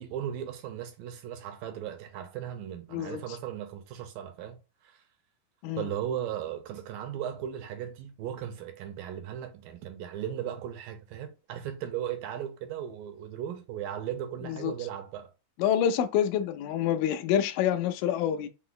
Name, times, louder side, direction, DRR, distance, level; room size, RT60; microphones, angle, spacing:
voice 1, 0.0-5.0 5.8-15.3, right 10 dB, 75° right, 2.2 m, -37 dB
voice 2, 15.6-18.5, left 9 dB, 85° left, 1.9 m, -27 dB
5.9 x 2.0 x 3.8 m
omnidirectional pair, 4.4 m